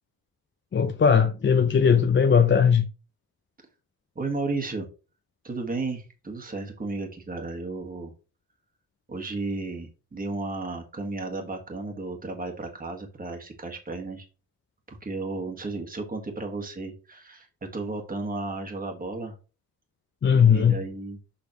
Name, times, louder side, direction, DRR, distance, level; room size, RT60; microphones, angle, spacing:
voice 1, 0.7-2.8 20.2-20.8, left 7 dB, 30° left, 0.7 m, -19 dB
voice 2, 4.1-4.9 5.4-8.1 9.1-14.3 14.9-17.5 17.7-19.3 20.5-21.2, right 3 dB, 25° right, 1.6 m, -33 dB
6.8 x 5.0 x 3.0 m
cardioid pair, 75°, 37 cm